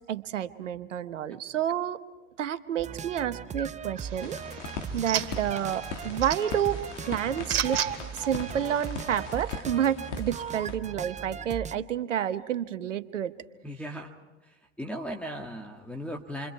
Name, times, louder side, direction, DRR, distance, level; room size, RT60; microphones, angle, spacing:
voice 1, 0.1-2.0 2.4-4.4 4.9-7.8 8.1-13.3, right 10 dB, 85° right, 13 dB, 1.0 m, -29 dB
sound 1, 2.8-11.8, right 6 dB, 20° right, 0.7 m, -38 dB
sound 2, 4.0-9.4, right 9 dB, 70° right, 2.2 m, -36 dB
sound 3, 4.2-10.8, left 5 dB, 75° left, 2.3 m, -40 dB
voice 2, 13.6-14.1 14.4-16.5, equal, 5° left, 2 dB, 1.8 m, -37 dB
28.5 x 25.0 x 4.7 m, 1.1 s
hypercardioid pair, 80°, 36 cm